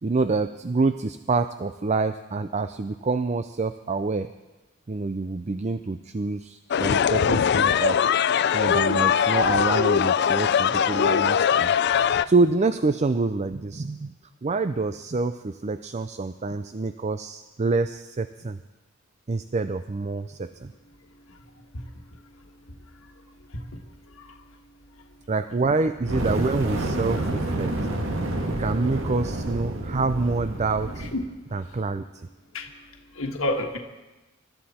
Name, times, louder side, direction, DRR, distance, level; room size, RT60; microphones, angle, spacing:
voice 1, 0.0-4.3 4.9-8.0 8.5-11.7 12.1-14.1 14.4-18.6 19.3-20.7 25.3-27.7 28.6-31.1 31.5-32.0, right 3 dB, 35° right, 11 dB, 0.5 m, -26 dB
sound 1, 6.7-12.3, left 8 dB, 55° left, 0.4 m, -21 dB
voice 2, 23.5-23.8 24.1-24.4 31.0-31.2 32.5-32.7 33.1-33.8, left 1 dB, 80° left, 2 dB, 1.5 m, -30 dB
Fire, 26.0-31.3, right 1 dB, 70° right, 1.8 m, -29 dB
25.5 x 13.0 x 4.3 m, 1.1 s
head